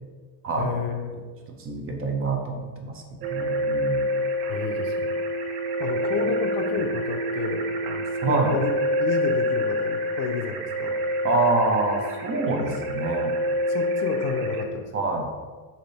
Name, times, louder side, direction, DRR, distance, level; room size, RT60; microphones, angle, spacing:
voice 1, 0.6-1.1 4.5-5.2 5.4-5.5 5.8-11.0 13.7-14.9, left 5 dB, 50° left, 5 dB, 0.5 m, -31 dB
voice 2, 1.6-4.1 8.2-8.6 11.2-13.3 14.9-15.3, right 3 dB, 30° right, 2 dB, 0.5 m, -26 dB
sound 1, 3.2-14.7, equal, 85° right, 0.6 m, -27 dB
3.3 x 2.7 x 3.9 m, 1.4 s
cardioid pair, 130°, 42 cm